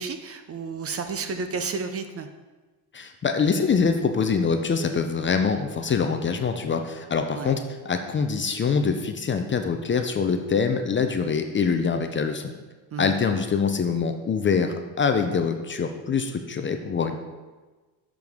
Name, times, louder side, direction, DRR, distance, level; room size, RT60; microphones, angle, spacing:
voice 1, 0.0-2.3 7.3-7.5 12.9-13.1, right 4 dB, 35° right, 8 dB, 0.5 m, -31 dB
voice 2, 2.9-12.5 13.0-17.2, left 5 dB, 25° left, 6 dB, 0.5 m, -24 dB
6.9 x 6.1 x 3.6 m, 1.3 s
cardioid pair, 105°, 44 cm